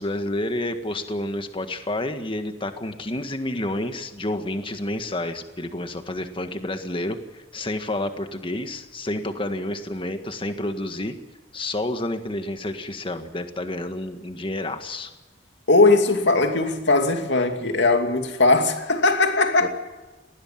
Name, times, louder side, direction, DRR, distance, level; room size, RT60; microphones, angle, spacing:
voice 1, 0.0-11.2 11.5-15.1 19.6-19.7, left 1 dB, 30° left, 1.7 m, -29 dB
voice 2, 15.7-19.7, left 3 dB, 80° left, 2.6 m, -19 dB
20.0 x 17.0 x 8.8 m
head